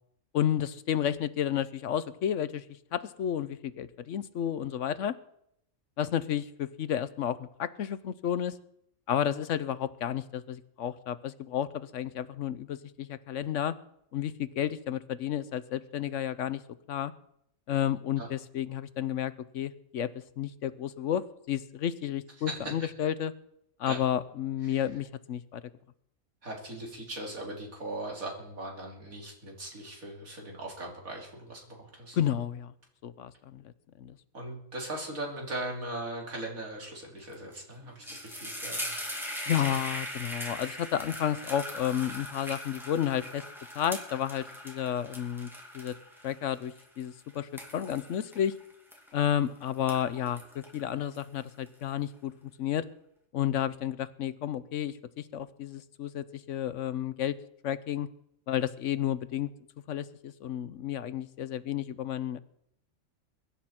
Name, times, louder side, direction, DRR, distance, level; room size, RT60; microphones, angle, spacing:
voice 1, 0.3-2.6 2.9-5.1 6.0-8.5 9.1-13.7 14.1-16.6 16.9-17.1 17.7-23.3 23.8-25.6 32.1-32.7 33.0-33.7 34.0-34.2 39.5-43.4 43.7-45.9 46.2-48.5 49.1-52.3 52.6-52.8 53.3-57.3 57.6-58.1 58.5-59.5 59.9-62.4, left 10 dB, 65° left, 15 dB, 1.0 m, -31 dB
voice 2, 26.4-32.2 34.3-39.0 39.5-39.6, right 1 dB, 90° right, -1 dB, 3.8 m, -39 dB
sound 1, 37.3-37.5 37.8-49.4 49.7-51.7, equal, ahead, 2.5 m, -40 dB
22.5 x 11.0 x 4.4 m, 0.75 s
omnidirectional pair, 1.4 m